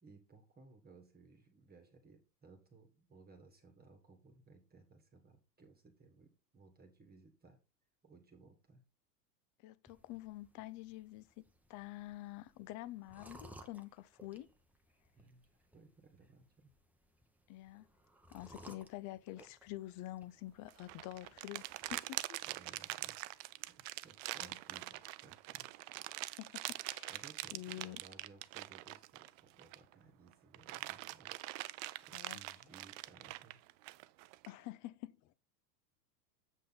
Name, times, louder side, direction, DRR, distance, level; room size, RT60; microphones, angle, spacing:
voice 1, 0.0-7.6 8.0-8.8 15.1-16.7 22.4-25.7 27.1-31.4 31.7-33.6, right 4 dB, 20° right, 1.7 m, -61 dB
voice 2, 9.6-11.4 11.7-14.5 17.5-17.9 18.3-21.6 21.9-22.4 24.4-24.6 26.4-27.2 27.5-28.0 32.1-32.4 34.5-35.3, left 16 dB, 40° left, 0.6 m, -47 dB
sound 1, 9.9-22.0, right 1 dB, 5° right, 0.9 m, -61 dB
sound 2, 20.7-29.9 30.3-34.5, right 19 dB, 50° right, 0.6 m, -44 dB
8.2 x 5.5 x 4.0 m
hypercardioid pair, 105°, 50 cm